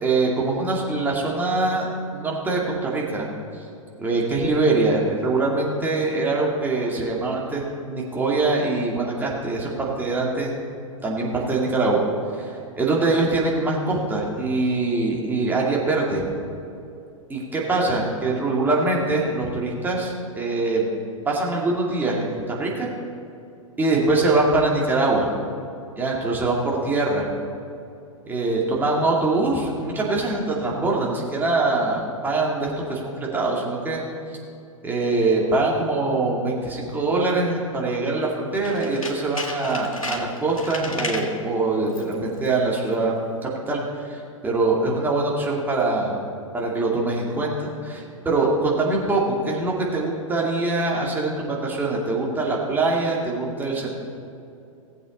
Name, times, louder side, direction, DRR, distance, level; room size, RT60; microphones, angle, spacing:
voice 1, 0.0-3.3 4.0-10.5 11.0-12.0 12.4-12.5 12.8-16.3 17.3-20.9 21.2-22.3 22.6-22.9 23.8-25.3 26.0-26.6 26.8-27.2 28.3-34.0 34.8-43.1 43.4-43.8 44.1-46.2 46.5-53.9, right 3 dB, 10° right, -3 dB, 2.4 m, -23 dB
Tools, 38.6-41.4 41.9-42.2 42.5-42.6, left 2 dB, 85° left, 1.9 m, -33 dB
18.5 x 8.0 x 4.0 m, 2.6 s
figure-of-eight pair, 105°, 17 cm